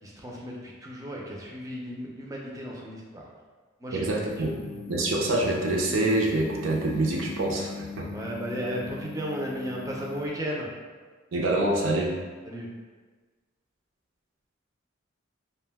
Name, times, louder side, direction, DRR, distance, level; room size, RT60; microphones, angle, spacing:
voice 1, 0.0-3.3 3.8-4.2 8.1-10.7 12.4-12.7, equal, 15° right, -2 dB, 0.4 m, -35 dB
voice 2, 3.9-4.5 4.9-8.1 11.3-12.2, right 2 dB, 75° right, -1 dB, 0.5 m, -26 dB
sound 1, 4.3-10.3, left 5 dB, 75° left, 0.3 m, -40 dB
2.4 x 2.1 x 3.4 m, 1.4 s
head